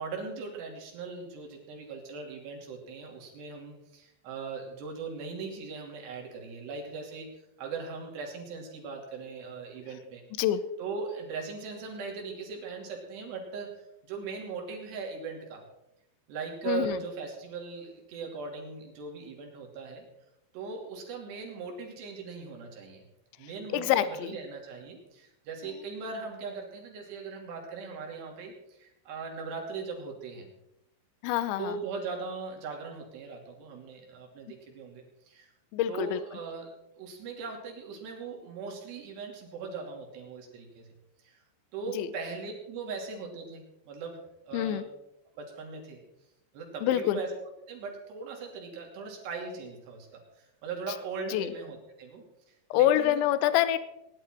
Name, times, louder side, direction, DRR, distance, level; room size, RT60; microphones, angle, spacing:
voice 1, 0.0-7.3 7.6-10.2 10.8-15.7 16.3-20.0 20.5-23.0 23.4-30.5 31.6-35.5 35.9-40.9 41.2-41.4 41.7-44.8 45.4-46.0 46.5-47.3 47.7-53.2, right 4 dB, 65° right, 0 dB, 4.8 m, -39 dB
voice 2, 16.7-17.0 23.7-24.4 31.2-31.8 35.7-36.2 41.9-42.1 44.5-44.9 46.8-47.2 51.3-51.5 52.7-53.8, left 12 dB, 80° left, 13 dB, 3.1 m, -26 dB
20.0 x 11.0 x 4.5 m, 0.85 s
omnidirectional pair, 5.5 m